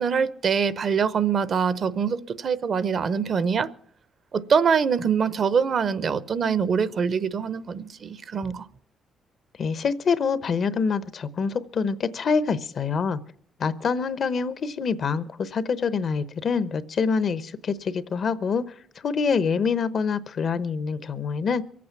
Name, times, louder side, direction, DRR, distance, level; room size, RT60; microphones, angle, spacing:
voice 1, 0.0-3.7 4.3-8.7, right 6 dB, 55° right, 0.8 m, -24 dB
voice 2, 9.6-13.2 13.6-18.6 19.0-21.6, left 5 dB, 55° left, 0.8 m, -26 dB
23.0 x 8.5 x 5.8 m
cardioid pair, 90°, 0 cm